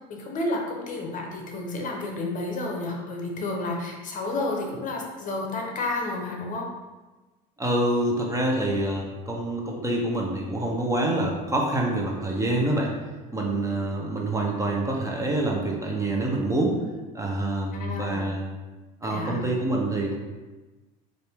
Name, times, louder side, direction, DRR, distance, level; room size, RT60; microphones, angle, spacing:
voice 1, 0.1-6.6 17.7-18.2 19.1-19.4, left 2 dB, 45° left, 0 dB, 0.8 m, -31 dB
voice 2, 7.6-12.9 13.3-16.8 17.1-18.4 19.0-20.2, right 1 dB, 15° right, -2 dB, 0.7 m, -26 dB
4.1 x 2.6 x 3.5 m, 1.2 s
supercardioid pair, 95°, 19 cm